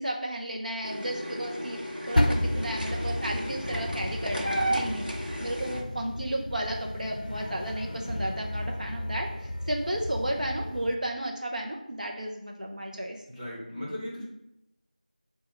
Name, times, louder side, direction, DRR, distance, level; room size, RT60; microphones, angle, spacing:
voice 1, 0.0-1.8 2.1-13.2, right 1 dB, 60° right, 1 dB, 0.6 m, -33 dB
sound 1, 0.8-5.8, right 1 dB, 75° right, 0.9 m, -33 dB
sound 2, 2.1-10.9, left 1 dB, 65° left, 0.5 m, -32 dB
voice 2, 13.3-14.2, left 1 dB, 10° right, -11 dB, 1.0 m, -37 dB
4.6 x 2.3 x 4.2 m, 0.84 s
figure-of-eight pair, 175°, 5 cm